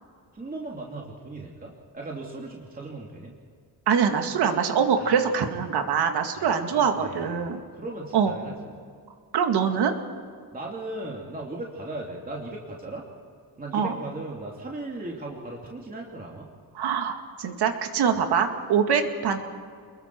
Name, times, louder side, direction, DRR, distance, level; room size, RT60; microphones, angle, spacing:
voice 1, 0.3-3.3 5.0-5.2 6.3-8.8 10.5-13.0 13.6-16.5 18.1-18.2, right 2 dB, 20° right, -2 dB, 2.7 m, -37 dB
voice 2, 3.9-7.6 8.1-8.3 9.3-9.9 13.7-14.0 16.7-19.4, right 7 dB, 80° right, 5 dB, 2.2 m, -24 dB
28.5 x 22.0 x 4.7 m, 2.2 s
cardioid pair, 120°, 39 cm